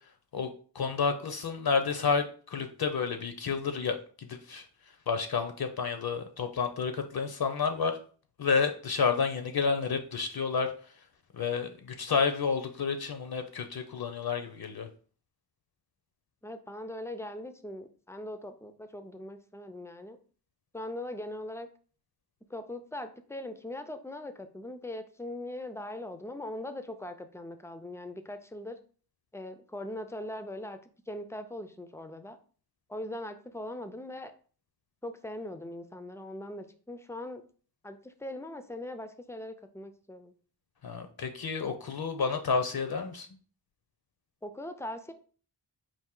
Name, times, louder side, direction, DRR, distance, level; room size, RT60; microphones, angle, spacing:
voice 1, 0.7-4.6 5.1-8.0 8.4-10.7 11.3-14.9 40.8-43.3, left 5 dB, 60° left, 7 dB, 0.5 m, -30 dB
voice 2, 16.4-20.2 20.7-21.7 22.5-28.8 29.3-30.8 31.1-32.4 32.9-34.3 35.0-37.4 37.8-40.3 44.4-45.1, left 1 dB, 5° left, 9 dB, 0.3 m, -40 dB
4.3 x 2.5 x 3.7 m, 0.42 s
wide cardioid pair, 95°, 42 cm